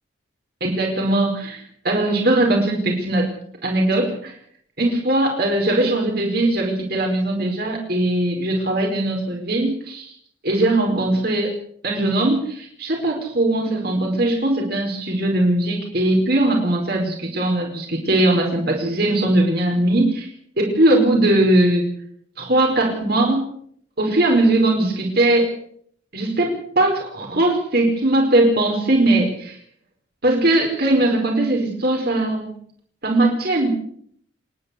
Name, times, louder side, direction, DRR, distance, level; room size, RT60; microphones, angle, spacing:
voice 1, 0.6-3.3 3.6-4.3 4.8-10.1 10.4-11.5 11.8-20.3 20.6-21.8 22.4-23.5 24.0-25.5 26.1-29.6 30.2-32.5 33.0-33.7, right 1 dB, 55° right, 1 dB, 4.9 m, -20 dB
28.0 x 11.5 x 8.4 m, 0.63 s
head